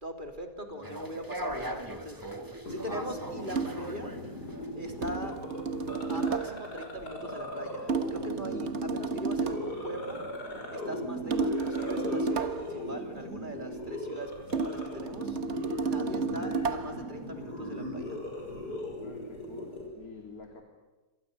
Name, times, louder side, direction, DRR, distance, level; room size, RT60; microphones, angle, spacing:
voice 1, 0.0-2.2 2.7-4.1 4.7-5.4 6.1-10.2 10.7-15.4 15.7-18.2, right 1 dB, 30° right, 4 dB, 3.4 m, -41 dB
voice 2, 0.6-1.0 16.2-16.5 19.0-20.6, left 4 dB, 65° left, 3 dB, 3.4 m, -48 dB
sound 1, 0.8-4.7, equal, 15° right, 1.9 m, -40 dB
sound 2, 2.7-19.9, left 1 dB, 90° left, 6.9 m, -39 dB
sound 3, 3.5-3.9 5.0-6.7 7.9-9.8 11.3-12.8 14.5-17.1, right 4 dB, 45° right, 1.6 m, -32 dB
29.0 x 26.0 x 6.9 m, 1.2 s
omnidirectional pair, 1.7 m